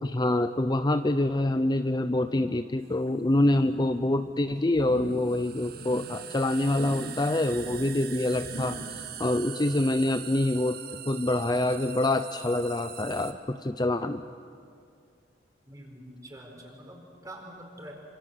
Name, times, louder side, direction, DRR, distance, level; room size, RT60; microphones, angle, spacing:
voice 1, 0.0-8.8 9.2-10.8 11.1-14.2, left 1 dB, 25° left, 9 dB, 0.6 m, -26 dB
sound 1, 2.8-2.9 4.9-13.3, right 10 dB, 55° right, 1.8 m, -42 dB
sound 2, 3.7-3.8 4.0-4.4 4.7-5.2 5.6-6.1 6.6-7.2 7.5-8.0 8.4-8.9 9.3-9.4, right 1 dB, 85° left, 5.6 m, -41 dB
voice 2, 15.7-17.9, right 1 dB, 20° right, 1 dB, 5.0 m, -45 dB
27.0 x 26.5 x 7.9 m, 2.4 s
head